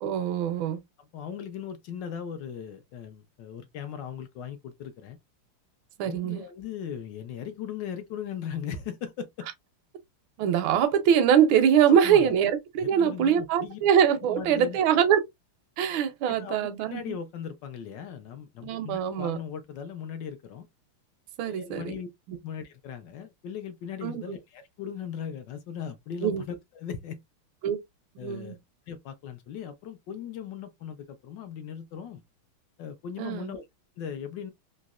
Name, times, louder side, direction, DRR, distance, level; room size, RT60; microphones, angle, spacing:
voice 1, 0.0-0.8 6.0-6.4 10.4-15.2 15.8-17.1 18.6-19.4 21.4-21.9 24.0-24.2 26.2-26.4 27.6-27.8 28.2-28.6 33.2-33.5, right 8 dB, 75° right, 1.4 m, -23 dB
voice 2, 1.0-5.2 6.0-9.5 11.8-12.3 12.8-13.8 14.2-15.0 16.3-20.7 21.4-22.1 22.4-27.2 28.2-28.6 28.9-32.2 32.8-33.6 34.0-34.5, left 8 dB, 70° left, 1.2 m, -38 dB
4.1 x 2.7 x 2.3 m
omnidirectional pair, 2.4 m